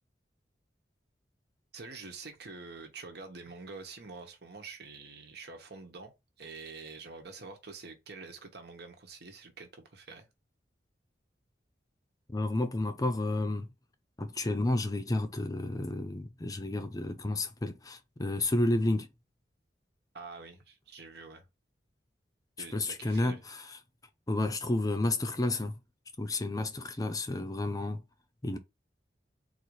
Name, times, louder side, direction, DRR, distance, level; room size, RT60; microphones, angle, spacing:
voice 1, 1.7-6.1 6.4-10.3 20.1-21.5 22.6-23.4, right 4 dB, 65° right, 1.1 m, -46 dB
voice 2, 12.3-13.7 14.2-19.1 22.7-23.8 24.3-25.8 26.2-28.0 28.4-28.6, left 2 dB, 20° left, 0.6 m, -31 dB
4.1 x 2.6 x 4.7 m
head